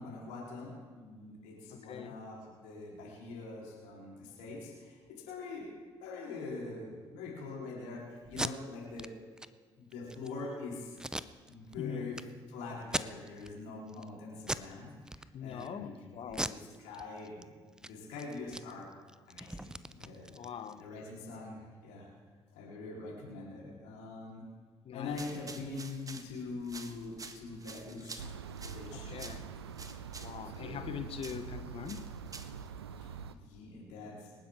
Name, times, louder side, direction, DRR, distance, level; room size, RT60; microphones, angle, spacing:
voice 1, 0.0-5.7 6.0-9.1 9.8-11.0 11.5-12.2 12.5-17.5 17.8-18.9 19.3-20.3 20.8-22.1 22.5-24.4 24.9-28.3 28.6-29.4 30.6-31.0 33.0-34.3, left 3 dB, 65° left, 3.7 m, -44 dB
voice 2, 1.7-2.2 11.8-12.1 15.3-16.5 20.3-20.8 24.8-25.3 28.9-29.5 30.1-32.2, left 9 dB, 45° left, 1.1 m, -42 dB
Packing tape duct tape, 8.2-8.5 9.0-9.1 9.4-9.5 9.9-10.3 11.0-11.8 12.1-12.2 12.8-13.5 13.9-14.1 14.4-14.7 15.0-15.7 16.3-17.4 17.7-17.9 18.2-20.8, right 1 dB, 5° right, 0.6 m, -39 dB
sound 1, 25.0-32.7, right 3 dB, 25° right, 1.4 m, -50 dB
sound 2, 28.2-33.4, right 6 dB, 80° right, 0.5 m, -45 dB
26.0 x 10.0 x 3.6 m
figure-of-eight pair, 50°, 13 cm